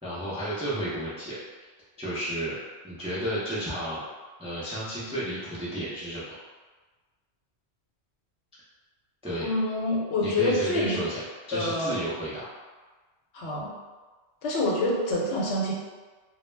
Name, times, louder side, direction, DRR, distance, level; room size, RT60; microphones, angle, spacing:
voice 1, 0.0-1.4 2.0-2.6 2.8-4.0 4.4-6.4 9.2-9.5 10.2-12.5, right 1 dB, 10° right, -9 dB, 0.3 m, -32 dB
voice 2, 9.4-11.0 11.5-12.0 13.3-13.7 14.4-15.7, left 2 dB, 75° left, -4 dB, 0.9 m, -26 dB
2.2 x 2.1 x 3.2 m, 1.3 s
omnidirectional pair, 1.1 m